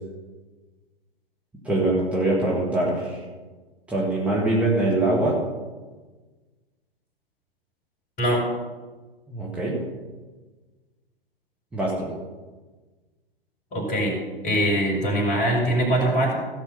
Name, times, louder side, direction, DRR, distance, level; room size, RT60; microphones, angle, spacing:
voice 1, 1.6-3.2 3.9-5.4 9.3-9.8 11.7-12.1, right 2 dB, 5° right, -6 dB, 2.2 m, -23 dB
voice 2, 13.7-14.2 14.4-16.3, right 1 dB, 25° left, 0 dB, 4.9 m, -22 dB
16.0 x 6.1 x 7.0 m, 1.3 s
figure-of-eight pair, 115°, 30 cm